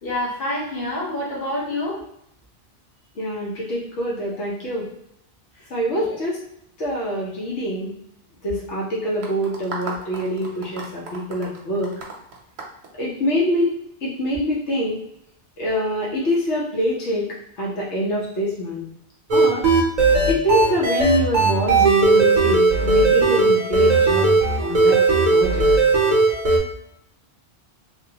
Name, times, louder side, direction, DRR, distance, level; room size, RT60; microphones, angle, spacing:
voice 1, 0.0-2.0 6.0-6.1, left 1 dB, 60° left, -5 dB, 1.3 m, -27 dB
voice 2, 3.2-4.9 5.7-6.4 6.8-7.9 8.4-11.9 13.0-13.7 14.0-15.0 15.6-17.3 17.6-18.8 19.3-19.6 20.3-24.3 24.6-25.0 25.3-25.6, equal, 90° left, -5 dB, 1.1 m, -24 dB
sound 1, 9.2-13.6, right 3 dB, 70° right, 0.9 m, -35 dB
sound 2, 19.3-26.6, right 3 dB, 45° right, 0.7 m, -17 dB
3.4 x 2.2 x 2.8 m, 0.73 s
omnidirectional pair, 1.1 m